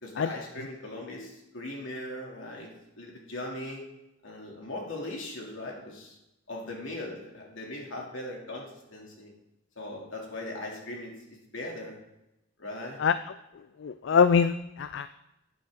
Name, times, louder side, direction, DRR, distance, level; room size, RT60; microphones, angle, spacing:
voice 1, 0.0-3.8 4.2-6.2 6.5-9.3 9.8-12.0 12.6-13.0, left 1 dB, 80° left, -2 dB, 2.8 m, -39 dB
voice 2, 13.8-15.1, left 6 dB, 65° left, 12 dB, 0.4 m, -23 dB
11.5 x 9.1 x 3.8 m, 0.90 s
head